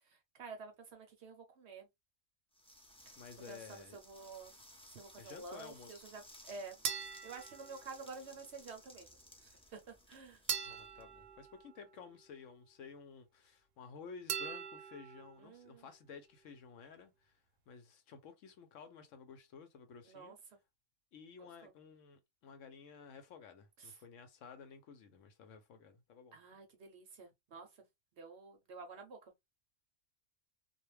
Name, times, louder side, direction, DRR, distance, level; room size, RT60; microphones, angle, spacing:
voice 1, 0.0-1.9 3.1-3.2 3.5-4.6 4.9-6.8 7.2-10.4 15.4-15.9 20.0-20.6 21.4-21.7 23.8-24.0 26.3-27.8 28.1-29.3, right 4 dB, 60° right, 0.8 m, -51 dB
sound 1, 2.5-11.5, left 1 dB, 10° left, 0.4 m, -59 dB
voice 2, 3.2-4.0 5.2-6.1 10.6-17.4 17.7-20.4 21.1-26.4, left 5 dB, 70° left, 0.9 m, -54 dB
sound 2, 6.8-8.3 10.5-12.3 14.3-15.4, right 8 dB, 90° right, 1.0 m, -42 dB
2.4 x 2.2 x 3.1 m
omnidirectional pair, 1.4 m